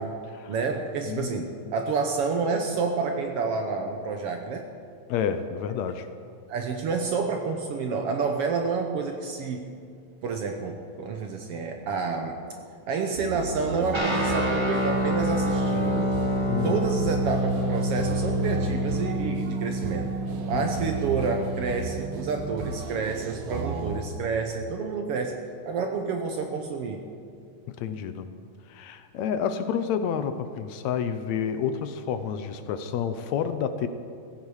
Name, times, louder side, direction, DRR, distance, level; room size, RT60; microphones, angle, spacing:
voice 1, 0.5-4.7 6.5-9.7 10.2-12.4 12.9-16.1 16.6-20.1 20.5-25.4 25.7-27.1, right 4 dB, 65° right, 4 dB, 1.6 m, -29 dB
voice 2, 1.1-1.7 5.1-6.1 16.5-16.9 20.5-20.7 27.7-28.3 28.7-33.9, left 8 dB, 75° left, 10 dB, 1.9 m, -29 dB
sound 1, 13.2-24.0, right 3 dB, 80° right, 2.6 m, -35 dB
sound 2, 13.9-22.8, right 1 dB, 45° right, 0.3 m, -28 dB
16.0 x 15.5 x 4.8 m, 2.4 s
omnidirectional pair, 3.4 m